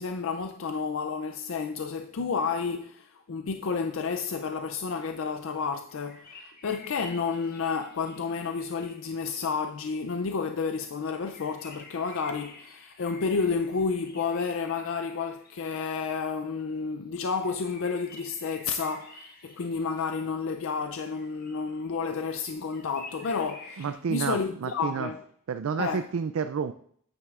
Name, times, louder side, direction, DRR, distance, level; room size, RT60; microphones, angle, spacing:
voice 1, 0.0-25.2 25.8-26.0, left 5 dB, 65° left, 0.4 m, -31 dB
sound 1, 5.9-10.2 11.0-16.1 17.4-20.2 20.7-23.9, left 3 dB, 45° left, 1.5 m, -51 dB
voice 2, 23.8-25.1 25.5-26.7, right 6 dB, 90° right, 0.4 m, -30 dB
9.4 x 8.8 x 2.5 m
head